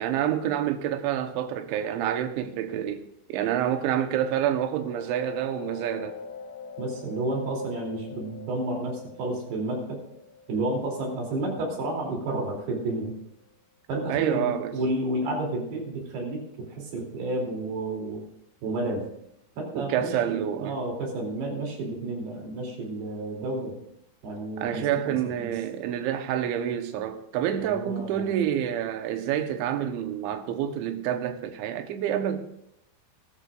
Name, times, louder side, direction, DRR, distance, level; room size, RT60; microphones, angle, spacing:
voice 1, 0.0-3.0 3.3-6.2 14.1-14.8 19.7-20.8 24.6-32.5, right 10 dB, 80° right, 3.3 m, -28 dB
sound 1, 3.8-13.2, left 5 dB, 85° left, 3.6 m, -45 dB
voice 2, 6.8-10.0 10.5-13.1 13.9-16.4 16.7-18.2 18.6-19.1 19.6-23.8 24.2-25.5 27.6-28.4, right 2 dB, 60° right, 4.9 m, -31 dB
22.0 x 12.5 x 2.5 m
omnidirectional pair, 5.4 m